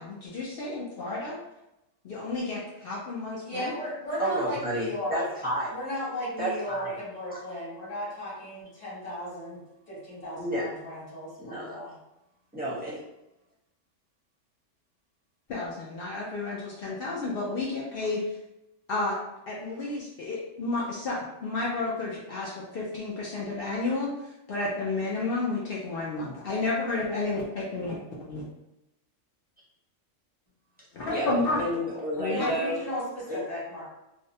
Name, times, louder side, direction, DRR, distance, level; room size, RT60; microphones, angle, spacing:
voice 1, 0.0-1.4 2.0-3.8 15.5-18.2 18.9-19.2 19.5-24.1 24.5-28.0 28.3-28.4 30.9-31.6 32.2-32.5, left 3 dB, 60° left, -5 dB, 0.6 m, -31 dB
voice 2, 3.4-5.3 5.7-9.6 9.9-12.0 32.2-33.8, equal, 30° left, -7 dB, 1.2 m, -35 dB
voice 3, 4.2-5.7 6.4-6.9 7.3-7.4 10.4-10.7 11.4-11.8 12.5-13.0 31.1-31.3 31.6-32.8 33.3-33.4, equal, 10° right, -9 dB, 0.6 m, -31 dB
2.6 x 2.1 x 2.7 m, 0.91 s
omnidirectional pair, 1.3 m